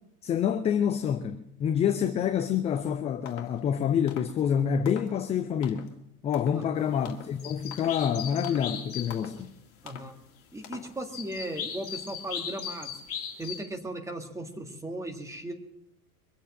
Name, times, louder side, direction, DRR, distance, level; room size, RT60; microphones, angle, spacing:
voice 1, 0.2-5.9 6.2-9.5, left 8 dB, 15° left, 0.5 m, -27 dB
sound 1, 2.7-2.9 3.3-3.6 4.1-4.4 4.9-5.2 5.6-6.0 6.3-6.7 7.0-7.4 7.7-8.1 8.4-8.7 9.1-9.4 9.9-10.1 10.6-11.0, left 8 dB, 50° left, 2.0 m, -45 dB
voice 2, 6.5-6.8 9.8-10.1 10.5-12.9 13.4-15.5, right 1 dB, 5° right, 2.0 m, -37 dB
sound 2, 7.0-7.1 7.4-9.4 11.1-13.6, left 8 dB, 30° left, 3.0 m, -38 dB
23.0 x 7.8 x 7.5 m
figure-of-eight pair, 90°, 44 cm